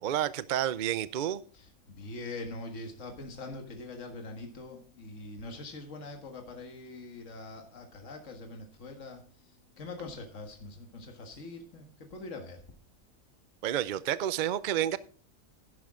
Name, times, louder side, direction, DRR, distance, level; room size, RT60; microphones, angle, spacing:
voice 1, 0.0-1.4 13.6-15.0, right 11 dB, 65° right, 16 dB, 0.4 m, -30 dB
voice 2, 1.5-9.2 9.8-12.6, left 2 dB, 60° left, 3 dB, 2.0 m, -43 dB
11.0 x 10.5 x 3.7 m, 0.41 s
omnidirectional pair, 1.5 m